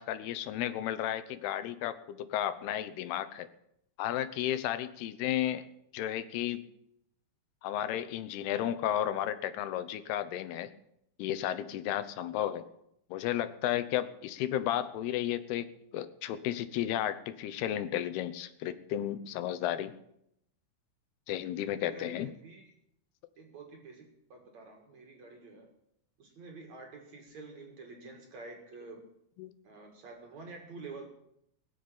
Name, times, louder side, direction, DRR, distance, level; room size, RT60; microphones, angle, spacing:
voice 1, 0.0-3.5 4.0-5.6 5.9-6.6 7.6-10.7 11.2-12.6 13.1-15.7 15.9-19.9 21.3-22.3 29.4-29.5, left 12 dB, 85° left, 13 dB, 2.9 m, -33 dB
voice 2, 21.6-22.6 23.4-25.7 26.2-29.0 29.6-31.1, right 3 dB, 50° right, 2 dB, 2.9 m, -48 dB
20.0 x 7.2 x 8.8 m, 0.77 s
omnidirectional pair, 4.5 m